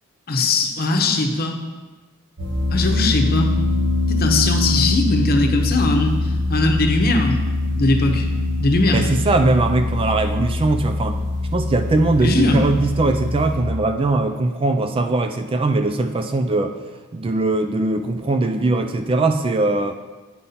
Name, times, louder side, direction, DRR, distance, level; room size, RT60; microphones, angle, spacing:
voice 1, 0.3-1.5 2.7-3.5 4.1-7.4 7.8-8.3 8.6-9.1 12.2-12.6, left 2 dB, 45° left, 3 dB, 0.9 m, -20 dB
sound 1, 2.4-13.6, left 2 dB, 60° right, 2.0 m, -23 dB
voice 2, 8.9-11.2 11.5-16.7 17.1-19.9, right 2 dB, 25° right, 7 dB, 0.3 m, -20 dB
8.7 x 5.4 x 4.2 m, 1.3 s
head